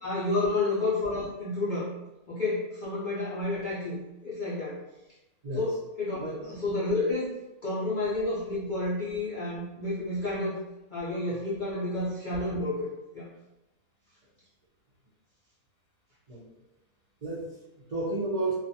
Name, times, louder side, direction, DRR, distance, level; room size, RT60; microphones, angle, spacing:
voice 1, 0.0-1.9 2.3-4.8 5.6-7.3 7.6-10.6 10.9-12.9 13.1-13.3, left 2 dB, 70° left, -8 dB, 0.4 m, -30 dB
voice 2, 6.2-6.5 16.3-16.5 17.2-18.5, right 2 dB, 65° right, -8 dB, 0.4 m, -32 dB
2.4 x 2.3 x 2.6 m, 0.97 s
omnidirectional pair, 1.5 m